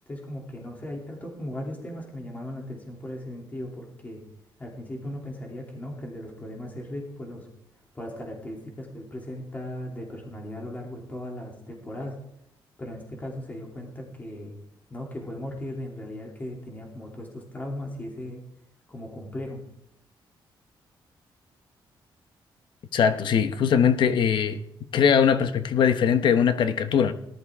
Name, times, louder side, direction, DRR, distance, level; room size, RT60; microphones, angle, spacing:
voice 1, 0.1-4.2 4.6-7.5 7.9-12.1 12.8-14.5 14.9-18.4 18.9-19.6, left 1 dB, 20° left, 2.8 m, -37 dB
voice 2, 22.9-24.6 24.9-27.1, left 7 dB, 65° left, 1.0 m, -21 dB
18.5 x 12.5 x 3.6 m
wide cardioid pair, 160°, 9 cm